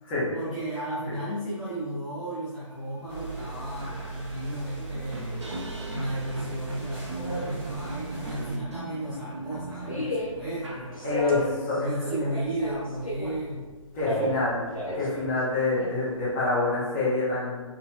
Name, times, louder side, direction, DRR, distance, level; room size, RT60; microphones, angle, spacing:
voice 1, 0.3-5.4 5.9-11.0 11.8-13.7, right 1 dB, 5° right, -15 dB, 0.8 m, -34 dB
sound 1, 3.0-3.1 3.4-11.5, right 2 dB, 60° right, 0.8 m, -39 dB
sound 2, 3.1-8.6, right 3 dB, 20° right, 1.1 m, -38 dB
sound 3, 9.0-16.7, left 1 dB, 90° left, 1.1 m, -34 dB
voice 2, 11.0-12.1 13.9-14.7 14.9-17.6, left 2 dB, 20° left, -9 dB, 1.3 m, -26 dB
4.4 x 4.1 x 2.2 m, 1.3 s
figure-of-eight pair, 140°, 17 cm